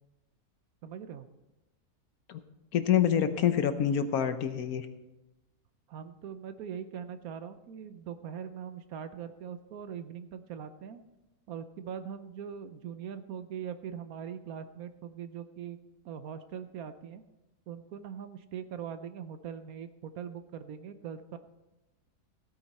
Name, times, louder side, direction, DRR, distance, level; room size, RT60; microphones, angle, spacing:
voice 1, 0.8-1.3 5.9-11.0 11.5-15.8 16.0-17.2 17.7-21.4, right 8 dB, 70° right, 10 dB, 1.1 m, -41 dB
voice 2, 2.7-4.9, left 9 dB, 70° left, 10 dB, 1.3 m, -26 dB
16.0 x 8.9 x 4.2 m, 1.0 s
omnidirectional pair, 1.6 m